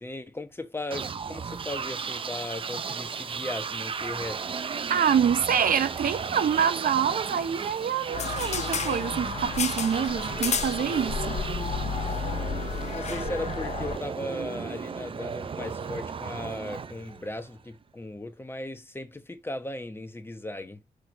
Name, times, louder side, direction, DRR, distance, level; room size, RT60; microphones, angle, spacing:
voice 1, 0.0-4.4 12.8-20.8, left 1 dB, 15° left, 1.1 m, -37 dB
sound 1, 0.9-17.6, right 6 dB, 40° right, 0.5 m, -34 dB
voice 2, 4.9-11.4, right 8 dB, 75° right, 0.8 m, -26 dB
sound 2, 8.1-14.0, left 7 dB, 50° left, 0.5 m, -32 dB
6.2 x 3.5 x 5.2 m
wide cardioid pair, 115°, 14 cm